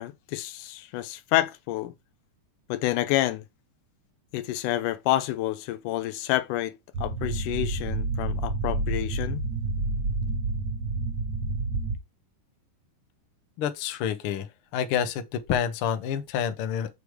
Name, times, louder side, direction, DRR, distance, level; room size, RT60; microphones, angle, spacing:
voice 1, 0.0-1.9 2.7-3.4 4.3-9.4, left 14 dB, 80° left, 2.0 m, -28 dB
sound 1, 6.9-12.0, right 3 dB, 65° right, 0.9 m, -29 dB
voice 2, 13.6-17.0, left 8 dB, 65° left, 1.4 m, -28 dB
8.1 x 3.4 x 4.7 m
omnidirectional pair, 3.7 m